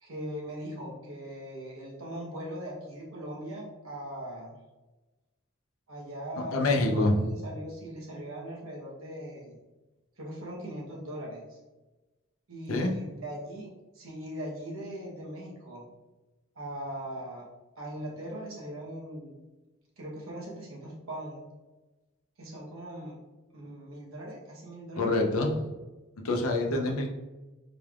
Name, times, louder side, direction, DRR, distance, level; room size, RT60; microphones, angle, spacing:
voice 1, 0.0-4.5 5.9-9.6 10.2-11.6 12.5-15.8 16.5-17.5 17.8-19.4 20.0-21.4 22.4-23.2 23.5-25.0, right 1 dB, 85° right, -3 dB, 1.0 m, -40 dB
voice 2, 6.5-7.3 12.7-12.9 25.0-25.6 26.2-27.1, left 2 dB, 90° left, 2 dB, 0.6 m, -26 dB
3.9 x 3.4 x 2.4 m, 1.1 s
head